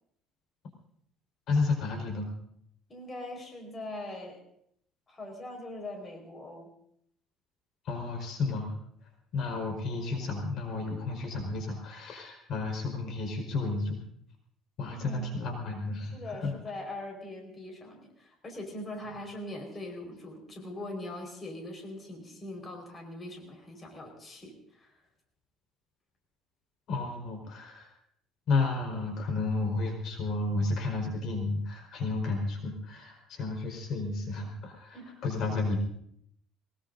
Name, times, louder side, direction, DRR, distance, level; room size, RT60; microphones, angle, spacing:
voice 1, 1.5-2.3 7.8-8.8 9.3-14.0 14.8-16.5 26.9-27.9 28.5-35.8, left 3 dB, 55° left, 2 dB, 4.6 m, -32 dB
voice 2, 2.9-4.4 5.1-6.7 14.9-15.3 16.1-25.0 34.9-35.2, left 1 dB, 25° left, 2 dB, 4.7 m, -41 dB
23.5 x 21.0 x 2.7 m, 0.69 s
cardioid pair, 125°, 0 cm